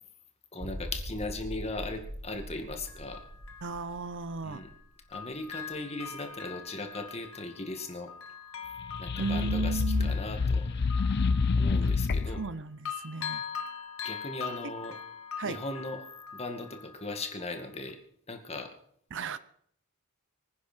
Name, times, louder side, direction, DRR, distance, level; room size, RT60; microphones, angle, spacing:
voice 1, 0.5-3.3 4.4-4.7 5.1-8.1 9.0-10.6 11.6-12.4 14.0-15.0 15.4-18.0 18.3-18.7, left 2 dB, 30° left, 5 dB, 2.2 m, -38 dB
sound 1, 0.6-6.0 6.3-6.4 7.0-7.1, equal, 90° right, 2.2 m, -43 dB
Bell, 1.9-2.0 2.9-4.8 5.1-12.6 12.9-17.5 17.9-18.0, left 7 dB, 70° left, 1.6 m, -43 dB
voice 2, 3.6-4.6 9.2-10.1 11.8-11.9 12.3-13.4 15.4-15.6 19.1-19.4, right 4 dB, 55° right, 14 dB, 0.8 m, -34 dB
sound 2, 8.8-12.5, left 4 dB, 50° left, 0.5 m, -27 dB
25.0 x 9.9 x 4.5 m, 0.64 s
head